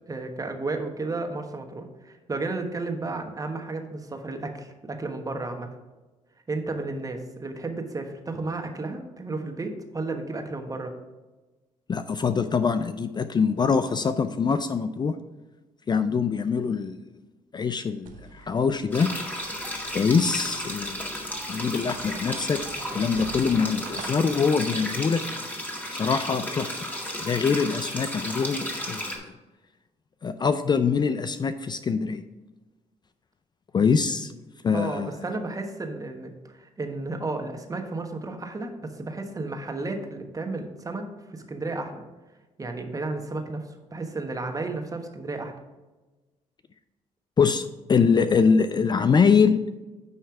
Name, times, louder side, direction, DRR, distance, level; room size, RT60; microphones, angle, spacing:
voice 1, 0.1-5.7 6.5-10.9 34.7-42.0 42.6-45.5, right 3 dB, 25° right, 5 dB, 1.2 m, -33 dB
voice 2, 11.9-15.1 15.9-17.0 17.5-19.1 19.9-22.6 22.9-25.2 25.9-26.8 27.2-29.3 30.2-32.2 33.7-34.3 34.6-35.1 47.4-49.6, left 5 dB, 30° left, 10 dB, 0.4 m, -24 dB
sound 1, 18.0-24.6, right 5 dB, 75° right, 0.8 m, -45 dB
sound 2, 18.9-29.2, equal, 10° left, 1.9 m, -33 dB
9.4 x 3.2 x 5.8 m, 1.2 s
cardioid pair, 80°, 14 cm